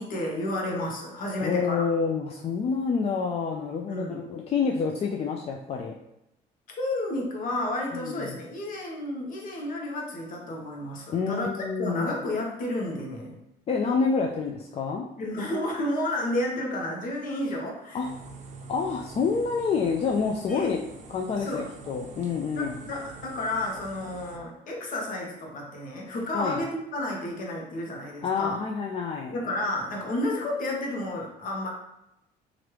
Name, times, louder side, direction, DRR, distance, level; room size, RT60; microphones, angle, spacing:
voice 1, 0.0-1.9 3.9-4.2 6.8-11.5 11.8-13.4 15.2-18.0 20.5-20.7 21.3-21.7 22.6-28.6 29.3-31.7, left 1 dB, 55° left, 0 dB, 0.9 m, -31 dB
voice 2, 1.4-6.0 8.0-8.3 11.1-12.2 13.7-15.1 17.9-18.1 18.7-20.8 21.1-22.8 26.3-26.6 28.2-29.3, left 5 dB, 35° left, 0 dB, 0.3 m, -28 dB
sound 1, 18.0-24.4, right 4 dB, 45° right, 0.5 m, -45 dB
3.1 x 2.5 x 3.0 m, 0.85 s
cardioid pair, 110°, 17 cm